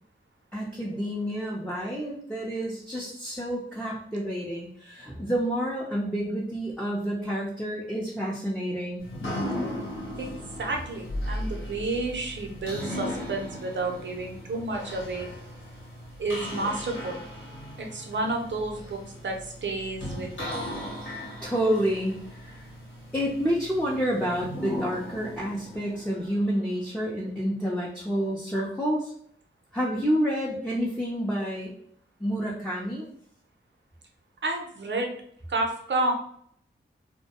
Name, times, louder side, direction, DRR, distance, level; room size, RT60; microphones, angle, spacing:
voice 1, 0.5-9.1 21.4-22.7 23.1-29.1 29.7-31.7 32.2-33.1, equal, 5° left, -5 dB, 0.6 m, -29 dB
sound 1, 9.0-26.8, left 1 dB, 80° left, 1.0 m, -37 dB
voice 2, 10.6-15.3 16.2-17.2 17.8-19.4 19.6-20.6 34.4-35.1 35.5-36.1, right 2 dB, 65° right, 2 dB, 0.7 m, -30 dB
2.2 x 2.1 x 2.8 m, 0.63 s
cardioid pair, 45°, 20 cm